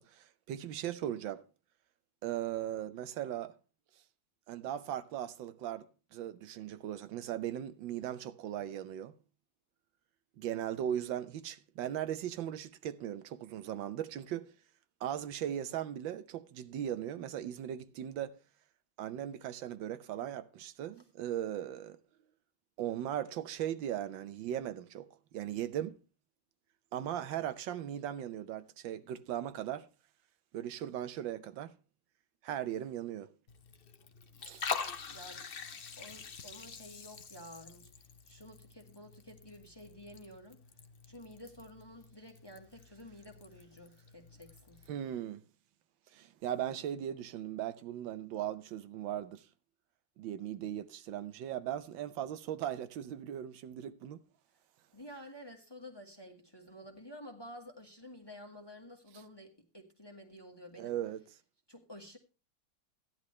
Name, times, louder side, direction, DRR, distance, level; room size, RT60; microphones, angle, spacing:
voice 1, 0.0-1.4 2.2-3.5 4.5-5.9 6.1-9.1 10.4-14.5 15.0-18.4 19.0-22.0 22.8-25.1 25.3-26.0 26.9-29.9 30.5-31.7 32.4-33.3 34.4-34.7 44.9-45.4 46.1-49.5 50.2-54.2 60.8-61.2, right 11 dB, 85° right, 1.5 m, -38 dB
Liquid, 33.5-44.9, left 6 dB, 50° left, 0.7 m, -45 dB
voice 2, 35.1-35.4 36.0-37.9 38.3-40.6 41.0-44.8 54.9-60.9 61.7-62.2, equal, 15° left, 1.3 m, -51 dB
15.0 x 10.5 x 3.2 m
omnidirectional pair, 2.0 m